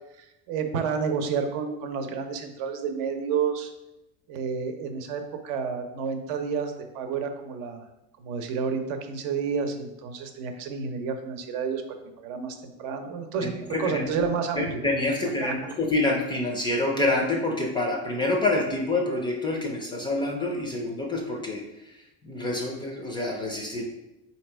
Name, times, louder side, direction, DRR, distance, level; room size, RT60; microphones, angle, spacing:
voice 1, 0.5-3.7 4.3-7.8 8.2-11.8 12.2-13.5 13.8-14.6 15.4-15.5, right 6 dB, 70° right, 6 dB, 0.7 m, -30 dB
voice 2, 13.4-14.2 14.6-21.9 22.2-23.8, left 2 dB, 15° left, 0 dB, 0.4 m, -27 dB
4.2 x 2.8 x 4.4 m, 0.92 s
cardioid pair, 165°, 32 cm